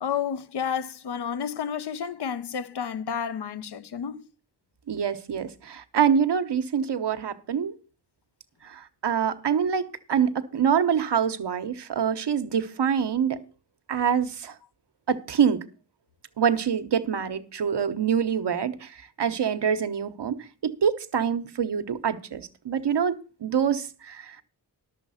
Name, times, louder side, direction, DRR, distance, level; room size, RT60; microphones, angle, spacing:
voice 1, 0.0-4.2, left 7 dB, 75° left, 0.8 m, -31 dB
voice 2, 4.9-7.7 8.6-13.4 13.9-14.5 15.1-15.6 16.4-18.9 19.2-24.4, right 7 dB, 85° right, 1.1 m, -25 dB
11.5 x 7.2 x 5.6 m
wide cardioid pair, 80°, 41 cm